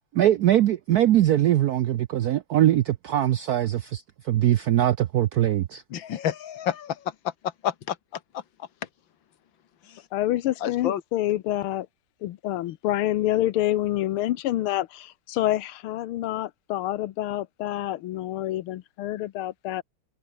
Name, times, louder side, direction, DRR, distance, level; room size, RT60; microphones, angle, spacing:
voice 1, 0.1-5.8, right 12 dB, 75° right, 0.8 m, -22 dB
voice 2, 5.9-7.3 7.6-8.7 9.8-10.0 10.6-11.0, left 10 dB, 65° left, 1.9 m, -30 dB
voice 3, 10.1-11.9 12.2-19.8, left 14 dB, 85° left, 1.7 m, -27 dB
omnidirectional pair, 2.3 m